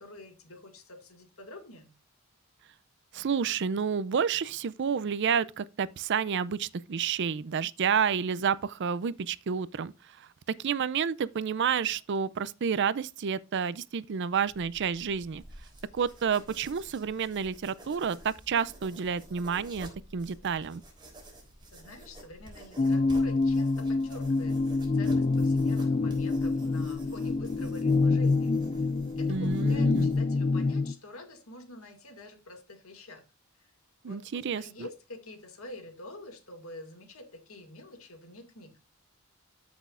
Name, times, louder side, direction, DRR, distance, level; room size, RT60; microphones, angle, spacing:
voice 1, 0.0-1.9 21.7-28.9 29.2-33.2 33.6-33.7 34.0-38.8, left 2 dB, 75° left, 2.1 m, -47 dB
voice 2, 3.1-10.3 10.6-15.4 15.9-20.8 29.3-30.1 34.0-34.9, right 6 dB, 55° right, 0.4 m, -30 dB
sound 1, 14.5-30.2, right 1 dB, 20° right, 3.6 m, -50 dB
sound 2, 22.8-30.9, left 3 dB, 30° left, 0.5 m, -26 dB
13.5 x 6.1 x 2.5 m
head